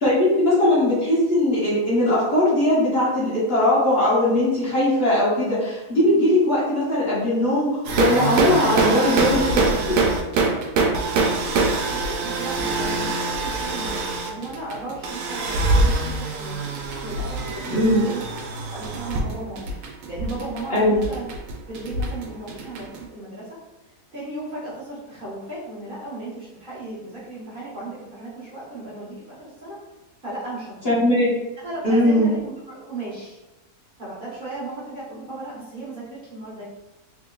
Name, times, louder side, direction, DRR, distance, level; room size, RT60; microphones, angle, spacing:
voice 1, 0.0-7.7 7.9-10.0 17.7-18.0 20.7-21.0 30.8-31.3 31.8-32.3, left 1 dB, 45° left, -9 dB, 1.2 m, -20 dB
sound 1, 7.8-23.0, right 3 dB, 85° right, 1.2 m, -24 dB
voice 2, 11.5-16.7 17.0-18.2 18.7-21.3 21.7-23.6 24.1-29.8 30.2-30.9 31.6-33.4 34.0-36.6, right 2 dB, 40° right, -9 dB, 1.3 m, -35 dB
3.6 x 3.3 x 2.3 m, 1.0 s
omnidirectional pair, 1.6 m